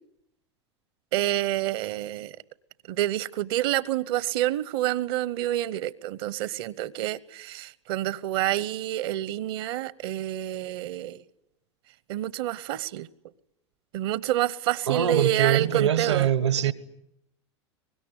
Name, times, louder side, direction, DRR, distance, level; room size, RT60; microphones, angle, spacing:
voice 1, 1.1-2.4 2.9-11.2 12.1-13.1 13.9-16.3, right 14 dB, 60° right, 0.9 m, -28 dB
voice 2, 14.9-16.7, right 9 dB, 75° right, 1.4 m, -23 dB
24.0 x 21.5 x 9.9 m
figure-of-eight pair, 85°, 14 cm